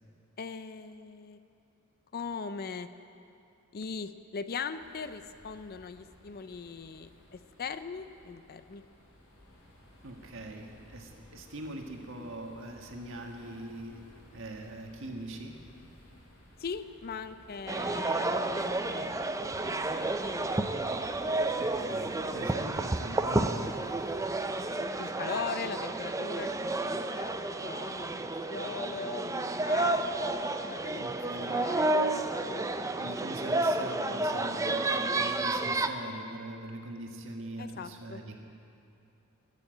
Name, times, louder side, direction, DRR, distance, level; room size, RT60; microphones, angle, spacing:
voice 1, 0.4-1.4 2.1-2.9 3.7-8.8 16.6-19.1 19.6-20.1 25.0-27.4 27.6-30.0 30.7-31.9 37.6-38.2, left 5 dB, 45° left, 12 dB, 0.5 m, -40 dB
sound 1, 4.7-24.2, left 1 dB, 85° left, 4.1 m, -57 dB
voice 2, 10.0-14.0 14.3-15.6 21.5-23.8 31.0-31.7 32.7-38.4, right 1 dB, 65° right, 2 dB, 1.7 m, -42 dB
sound 2, 17.7-35.9, right 2 dB, 15° right, 0.5 m, -31 dB
20.5 x 7.4 x 7.8 m, 2.7 s
head